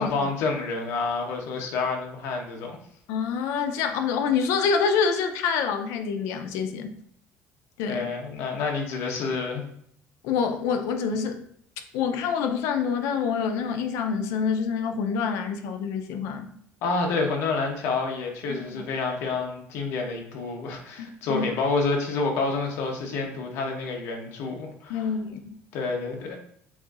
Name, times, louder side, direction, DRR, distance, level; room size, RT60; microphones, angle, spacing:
voice 1, 0.0-2.8 7.9-9.6 16.8-25.1 25.7-26.4, left 4 dB, 65° left, 1 dB, 0.9 m, -28 dB
voice 2, 3.1-7.0 7.8-8.1 10.2-11.4 11.9-16.5 18.5-18.8 21.0-21.5 24.9-25.6, left 6 dB, 85° left, 7 dB, 0.5 m, -27 dB
7.0 x 2.7 x 2.4 m, 0.68 s
cardioid pair, 175°, 5 cm